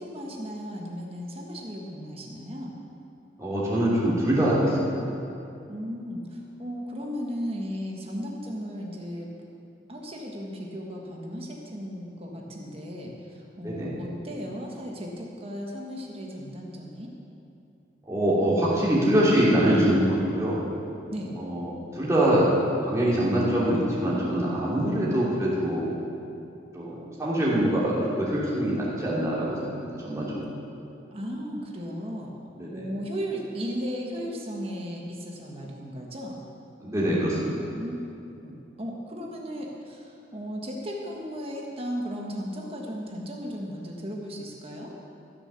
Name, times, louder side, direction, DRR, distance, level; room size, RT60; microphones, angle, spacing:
voice 1, 0.0-2.8 5.7-9.3 9.9-17.1 21.1-21.3 31.1-32.3 32.7-36.4 37.7-38.0 38.4-44.9, equal, 35° right, -1 dB, 1.5 m, -35 dB
voice 2, 3.4-5.0 13.6-13.9 18.1-20.6 21.4-22.5 22.8-25.9 26.7-30.5 32.6-32.8 36.8-37.5, right 1 dB, 15° right, -7 dB, 2.8 m, -24 dB
14.5 x 6.8 x 6.9 m, 2.6 s
head